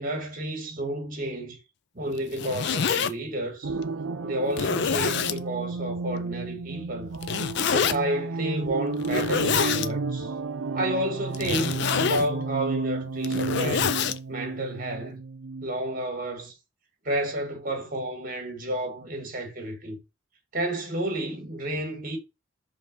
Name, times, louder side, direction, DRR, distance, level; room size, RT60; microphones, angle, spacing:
voice 1, 0.0-1.6 1.9-3.7 4.2-7.1 7.7-10.3 10.7-13.9 14.3-15.2 15.6-16.5 17.0-20.0 20.5-22.2, right 1 dB, 45° right, 1.6 m, -31 dB
Zipper (clothing), 2.2-3.1 3.8-3.9 4.5-5.4 7.2-8.0 9.0-9.9 11.3-12.3 13.1-14.2, left 6 dB, 55° left, 0.4 m, -26 dB
sound 1, 3.6-15.7, right 3 dB, 75° right, 0.6 m, -32 dB
5.3 x 3.4 x 5.3 m
head